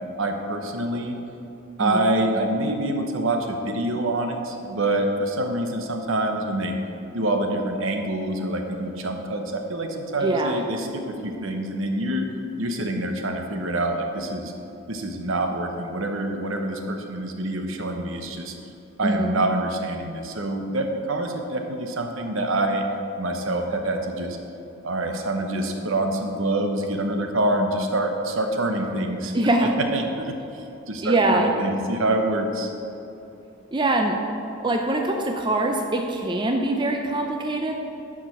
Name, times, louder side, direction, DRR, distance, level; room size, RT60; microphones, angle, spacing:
voice 1, 0.2-1.2 1.8-6.7 7.1-12.3 12.6-14.5 14.9-18.5 19.0-22.8 23.2-24.4 24.8-29.3 29.6-32.7, right 1 dB, 70° right, 4 dB, 1.0 m, -26 dB
voice 2, 10.2-10.6 19.0-19.3 29.3-29.7 31.0-31.5 33.7-34.2 34.6-37.8, right 2 dB, 20° right, 3 dB, 0.5 m, -23 dB
11.0 x 5.0 x 6.0 m, 2.8 s
head